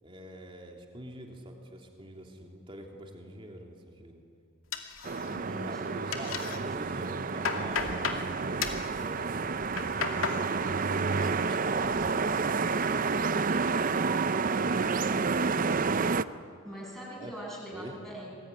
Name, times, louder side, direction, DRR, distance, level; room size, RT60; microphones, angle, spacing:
voice 1, 0.0-4.2 5.2-10.1 11.2-13.1 14.2-16.4 17.2-17.4 17.7-18.0, equal, 25° right, 1 dB, 3.1 m, -46 dB
sound 1, 4.7-5.6 5.8-6.6 7.0-8.2 8.6-8.9 9.5-10.4 10.8-11.3 11.7-12.1, left 6 dB, 75° left, 2.4 m, -34 dB
sound 2, 5.0-16.2, right 4 dB, 40° right, 0.6 m, -29 dB
voice 2, 5.2-6.0 16.6-18.4, equal, ahead, -4 dB, 8.0 m, -42 dB
26.5 x 20.5 x 9.8 m, 2.5 s
head